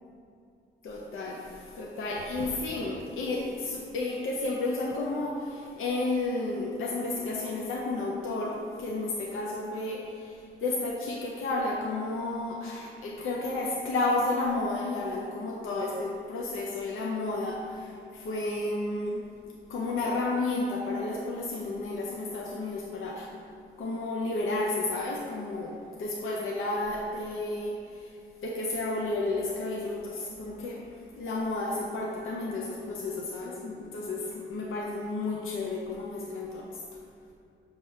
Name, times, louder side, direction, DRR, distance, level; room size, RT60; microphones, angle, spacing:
voice 1, 0.8-19.2 19.7-23.3 23.8-28.1 28.4-30.8 31.2-36.8, left 2 dB, 85° left, -2 dB, 0.6 m, -32 dB
6.5 x 3.0 x 5.4 m, 2.5 s
cardioid pair, 85°, 20 cm